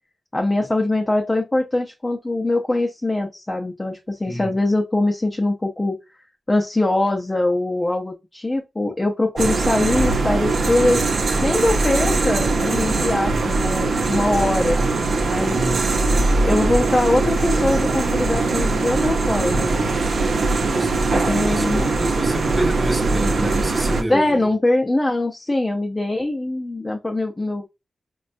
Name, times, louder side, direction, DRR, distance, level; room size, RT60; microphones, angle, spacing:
voice 1, 0.3-6.0 6.5-11.0 11.4-14.8 15.2-15.7 16.4-19.9 21.1-21.8 24.1-27.7, left 2 dB, 20° left, 0.5 m, -22 dB
sound 1, 9.4-24.0, right 3 dB, 75° right, 0.7 m, -21 dB
voice 2, 15.5-15.9 20.6-24.5, right 1 dB, 20° right, 0.7 m, -28 dB
4.2 x 2.2 x 2.5 m
wide cardioid pair, 95°, 0 cm